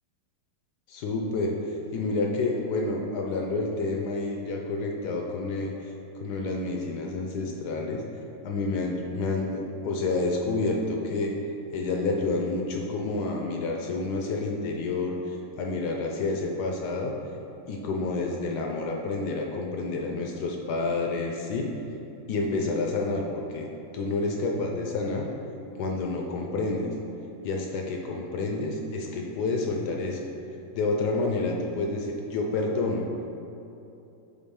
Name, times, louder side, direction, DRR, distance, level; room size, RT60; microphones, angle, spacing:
voice 1, 0.9-5.9 6.2-8.0 8.4-11.3 11.7-17.1 17.7-21.7 22.3-23.7 23.9-25.3 25.7-26.9 27.4-30.2 30.7-33.0, left 3 dB, 75° left, 0 dB, 0.9 m, -29 dB
7.9 x 3.7 x 3.6 m, 2.9 s
omnidirectional pair, 2.2 m